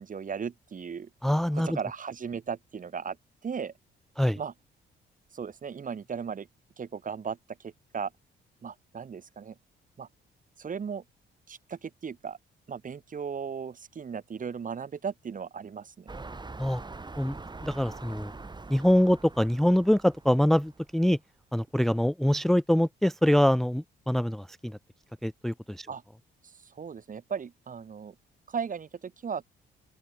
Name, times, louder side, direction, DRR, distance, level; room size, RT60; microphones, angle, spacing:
voice 1, 0.0-1.1 1.5-3.2 3.4-3.7 4.3-4.5 5.3-6.5 6.8-8.1 8.6-9.6 10.0-10.1 10.6-11.0 11.5-12.4 12.7-16.1 25.9-26.0 26.4-28.2 28.5-29.4, right 6 dB, 40° right, 2.6 m, -36 dB
voice 2, 1.2-1.8 4.2-4.4 16.6-16.8 17.2-17.4 17.6-18.3 18.7-21.2 21.5-24.8 25.2-25.9, equal, ahead, 0.5 m, -24 dB
sound 1, 16.1-21.1 21.7-21.8, right 3 dB, 20° right, 6.7 m, -44 dB
open air
cardioid pair, 90°, 20 cm